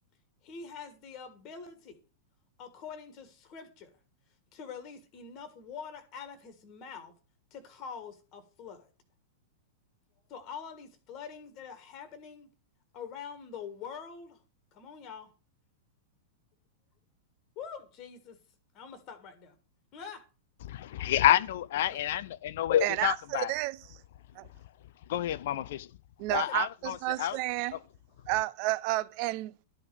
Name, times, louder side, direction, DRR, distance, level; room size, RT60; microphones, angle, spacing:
voice 1, 0.4-2.0 2.6-3.9 4.5-7.1 7.5-8.9 10.3-12.5 12.9-14.4 14.7-15.3 17.5-18.4 18.7-19.6 19.9-20.2 21.9-22.0 26.3-26.6, left 6 dB, 35° left, 1.5 m, -45 dB
voice 2, 20.7-23.5 25.1-25.9 26.3-27.4, left 12 dB, 55° left, 0.4 m, -28 dB
voice 3, 22.8-24.0 24.4-24.5 26.2-27.8 28.3-29.6, right 19 dB, 45° right, 0.5 m, -31 dB
12.0 x 5.0 x 6.7 m
figure-of-eight pair, 95°, 0 cm